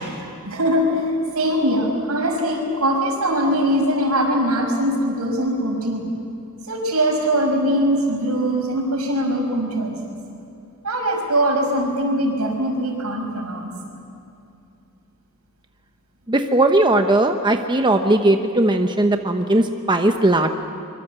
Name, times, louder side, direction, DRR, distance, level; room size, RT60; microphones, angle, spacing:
voice 1, 0.4-6.1 6.7-10.1 10.8-13.7, equal, 85° right, 2 dB, 5.8 m, -21 dB
voice 2, 16.3-20.5, right 1 dB, 20° right, 5 dB, 1.0 m, -18 dB
24.5 x 23.5 x 8.2 m, 2.7 s
head